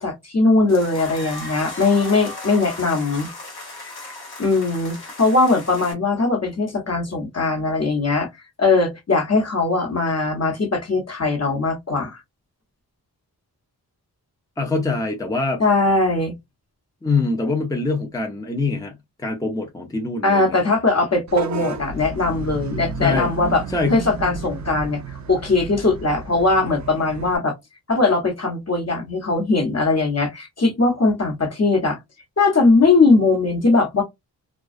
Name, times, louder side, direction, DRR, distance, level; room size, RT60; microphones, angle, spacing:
voice 1, 0.0-3.3 4.4-8.3 8.6-12.1 15.6-16.3 20.2-23.6 23.9-27.5 27.9-32.0 32.4-34.0, left 3 dB, 40° left, 1.1 m, -20 dB
sound 1, 0.7-5.9, left 2 dB, 65° left, 1.1 m, -36 dB
voice 2, 14.6-15.6 17.0-20.6 22.0-22.1 23.0-23.3 23.7-24.0, left 3 dB, 10° left, 0.6 m, -24 dB
Vehicle horn car horn honking / Bus, 21.3-27.4, right 4 dB, 45° right, 0.5 m, -32 dB
2.3 x 2.3 x 2.4 m
cardioid pair, 50°, 40 cm